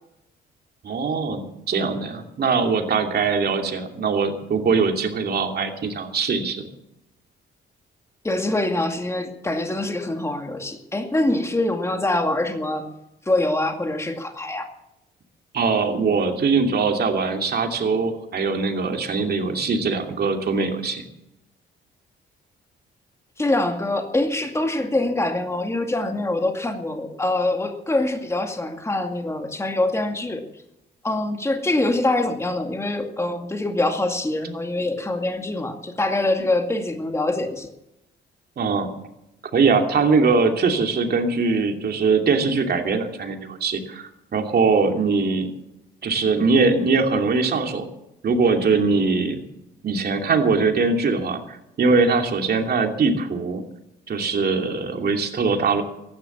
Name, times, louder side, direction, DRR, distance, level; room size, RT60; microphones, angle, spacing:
voice 1, 0.8-6.6 15.5-21.0 38.6-38.9 39.5-45.5 46.0-47.9 48.2-49.4 49.8-53.6 54.1-55.8, right 4 dB, 50° right, 4 dB, 2.8 m, -21 dB
voice 2, 8.2-12.8 13.3-14.7 23.4-30.4 31.0-37.7, left 2 dB, 15° left, 4 dB, 2.2 m, -24 dB
16.0 x 11.5 x 7.2 m, 0.86 s
cardioid pair, 90°, 20 cm